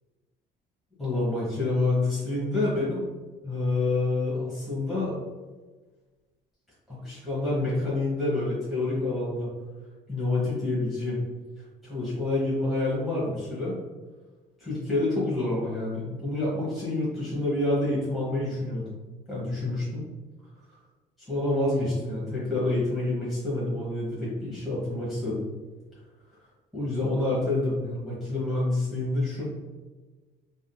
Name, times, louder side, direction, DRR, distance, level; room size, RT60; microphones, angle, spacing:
voice 1, 1.0-3.0 3.4-5.1 6.9-9.5 10.1-11.2 11.8-13.7 14.6-18.8 19.3-20.0 21.2-25.4 26.7-29.4, left 2 dB, ahead, -10 dB, 1.0 m, -28 dB
3.6 x 2.5 x 2.2 m, 1.3 s
cardioid pair, 110°, 17 cm